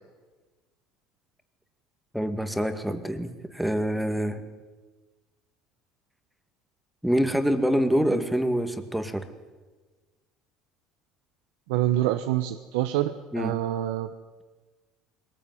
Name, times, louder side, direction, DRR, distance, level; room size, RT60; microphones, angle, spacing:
voice 1, 2.1-4.4 7.0-9.3 13.3-13.6, equal, ahead, 8 dB, 2.1 m, -26 dB
voice 2, 11.7-14.1, right 13 dB, 90° right, 8 dB, 1.2 m, -26 dB
21.5 x 20.0 x 9.5 m, 1.3 s
cardioid pair, 125°, 0 cm